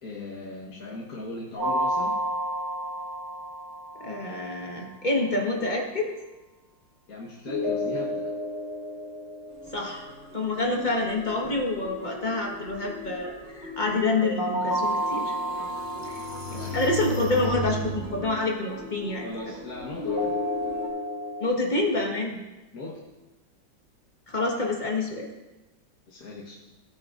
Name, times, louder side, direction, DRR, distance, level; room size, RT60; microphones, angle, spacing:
voice 1, 0.0-2.2 7.1-8.4 16.5-16.8 19.2-20.5 22.7-23.1 26.1-26.6, left 2 dB, 50° left, -5 dB, 1.6 m, -39 dB
sound 1, 1.6-4.5 7.5-10.5 14.2-17.4 20.0-21.5, equal, 20° right, 4.0 m, -31 dB
voice 2, 4.0-6.1 9.7-10.1 10.3-15.3 16.0-16.2 16.5-19.2 21.4-22.4 24.3-25.3, left 2 dB, 25° left, -1 dB, 1.3 m, -27 dB
sound 2, 9.5-20.9, left 2 dB, 40° right, 2.2 m, -41 dB
sound 3, 14.5-14.6 15.1-18.2, right 2 dB, 10° left, 2.5 m, -35 dB
16.5 x 9.4 x 2.5 m, 1.1 s
omnidirectional pair, 2.1 m